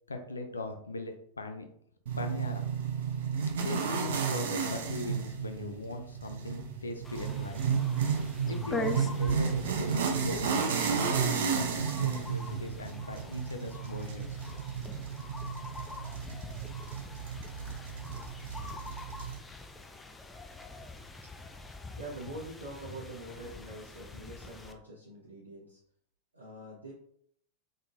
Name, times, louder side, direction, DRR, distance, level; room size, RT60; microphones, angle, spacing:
voice 1, 0.1-1.6 2.2-2.7 3.6-7.6 8.5-10.7 11.0-14.4, left 2 dB, 75° left, 5 dB, 0.6 m, -39 dB
sound 1, 2.1-19.4, right 6 dB, 60° right, 0.6 m, -32 dB
sound 2, 7.0-24.7, left 2 dB, 10° left, 0.4 m, -44 dB
voice 2, 19.3-19.7 22.0-25.8 26.3-26.9, right 1 dB, 80° right, -6 dB, 1.0 m, -45 dB
3.8 x 3.8 x 2.6 m, 0.66 s
figure-of-eight pair, 90°, 0 cm